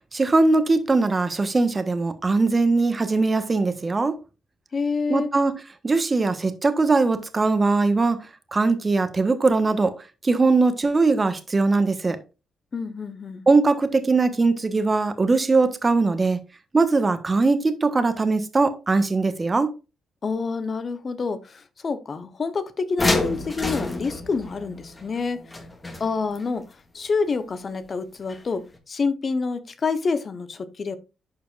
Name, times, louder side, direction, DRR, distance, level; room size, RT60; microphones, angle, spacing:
voice 1, 0.1-4.1 5.1-5.5 5.8-9.9 10.2-12.2 13.5-16.4 16.7-19.7, right 3 dB, 30° right, 1.4 m, -21 dB
voice 2, 4.7-5.3 12.7-13.5 20.2-25.6 26.0-31.0, left 4 dB, 45° left, 1.1 m, -28 dB
sound 1, 23.0-26.4 28.3-28.4 28.7-28.8, left 2 dB, 25° left, 2.1 m, -28 dB
11.5 x 5.1 x 2.5 m
supercardioid pair, 50°, 0 cm